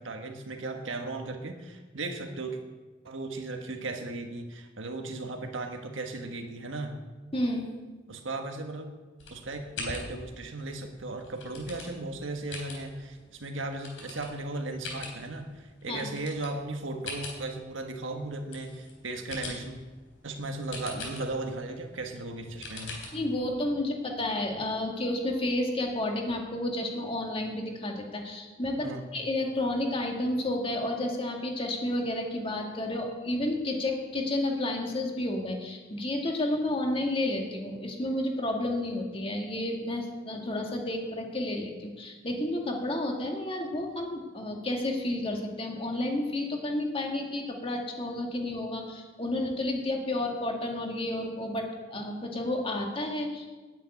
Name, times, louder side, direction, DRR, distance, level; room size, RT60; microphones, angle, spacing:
voice 1, 0.0-2.6 3.0-7.0 8.1-8.9 9.3-19.8 20.2-23.0 28.8-29.1, right 2 dB, 85° right, 4 dB, 1.4 m, -36 dB
voice 2, 7.3-7.7 15.9-16.1 23.1-53.5, left 1 dB, 30° left, 2 dB, 1.9 m, -31 dB
sound 1, 9.2-23.5, left 3 dB, 90° left, 3.7 m, -44 dB
9.5 x 8.8 x 9.5 m, 1.3 s
head